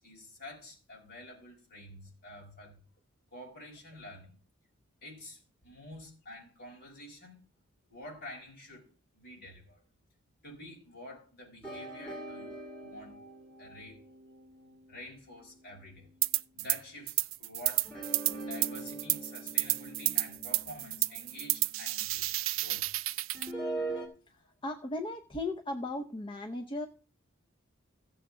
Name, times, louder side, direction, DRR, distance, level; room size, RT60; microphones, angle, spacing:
voice 1, 0.0-2.8 3.3-4.4 5.0-7.4 7.9-8.9 9.1-9.8 10.4-13.2 13.6-14.0 14.9-16.1 16.5-22.9, left 1 dB, 50° left, 5.3 m, -49 dB
sound 1, 11.6-16.2 17.8-22.0 23.3-24.1, right 2 dB, 5° left, 2.9 m, -43 dB
sound 2, 16.2-16.8 17.1-23.5, right 16 dB, 85° right, 0.4 m, -31 dB
voice 2, 24.3-26.9, left 2 dB, 25° left, 0.7 m, -37 dB
15.5 x 7.1 x 3.7 m
head